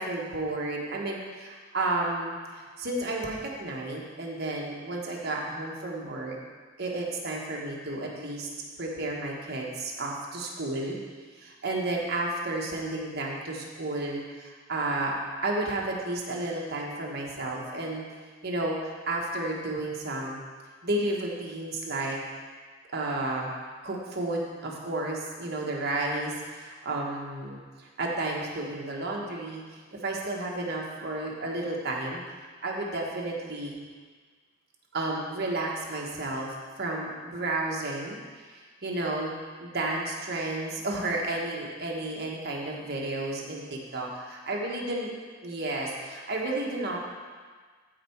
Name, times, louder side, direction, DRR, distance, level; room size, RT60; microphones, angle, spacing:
voice 1, 0.0-6.4 6.8-8.5 8.8-11.0 11.4-15.1 15.4-18.0 18.4-20.4 20.8-22.2 22.9-23.5 23.8-27.6 28.0-29.6 30.0-32.2 32.6-33.8 34.9-38.2 38.5-39.3 39.6-45.1 45.4-47.1, right 2 dB, 55° right, -2 dB, 1.5 m, -32 dB
14.0 x 4.7 x 4.6 m, 1.5 s
head